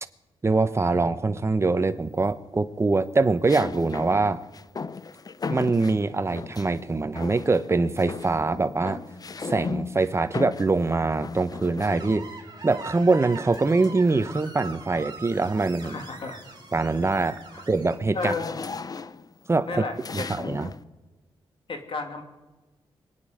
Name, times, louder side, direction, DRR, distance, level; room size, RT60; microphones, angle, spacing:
voice 1, 0.4-4.4 5.5-9.0 9.4-12.3 12.6-16.0 16.7-17.4 17.7-18.3 19.5-19.8 20.1-20.7, right 3 dB, 25° right, 11 dB, 1.0 m, -23 dB
sound 1, 1.6-2.1 3.5-6.8 7.2-7.7 8.0-12.4 13.5-14.9 15.4-15.7 16.1-20.8, left 4 dB, 40° left, 0.6 m, -37 dB
Screech, 11.9-17.9, right 4 dB, 45° right, 4.4 m, -42 dB
voice 2, 15.8-16.4 17.5-17.6 18.1-18.5 19.7-20.3 21.7-22.2, left 3 dB, 60° left, 5 dB, 2.5 m, -32 dB
26.0 x 9.3 x 5.1 m, 1.2 s
cardioid pair, 95°, 10 cm